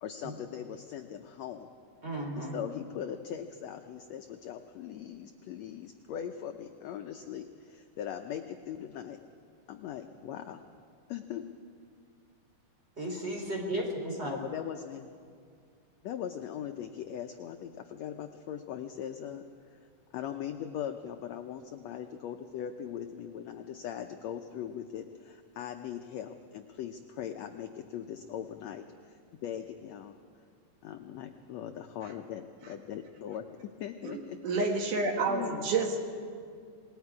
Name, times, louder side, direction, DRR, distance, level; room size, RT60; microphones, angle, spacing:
voice 1, 0.0-1.7 2.4-9.2 9.7-10.6 11.1-11.5 14.2-15.1 16.0-19.4 20.1-30.2 30.8-34.4 35.3-35.7, left 9 dB, 80° left, 6 dB, 1.5 m, -40 dB
voice 2, 2.0-2.6 13.0-14.4, right 1 dB, 20° right, 0 dB, 3.7 m, -34 dB
voice 3, 34.0-36.1, right 3 dB, 70° right, 2 dB, 3.0 m, -29 dB
27.0 x 21.0 x 4.8 m, 2.2 s
omnidirectional pair, 3.9 m